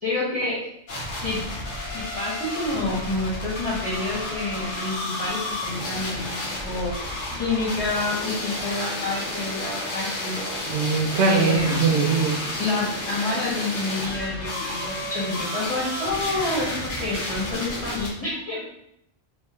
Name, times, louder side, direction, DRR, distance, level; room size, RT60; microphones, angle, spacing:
voice 1, 0.0-0.6 1.2-1.4 1.9-10.6 11.3-12.0 12.6-18.7, left 2 dB, 35° left, -8 dB, 1.6 m, -28 dB
sound 1, 0.9-18.1, left 1 dB, 55° left, 1.0 m, -31 dB
voice 2, 10.7-12.4, right 5 dB, 70° right, 1 dB, 0.8 m, -21 dB
3.6 x 2.6 x 3.0 m, 0.76 s
omnidirectional pair, 1.1 m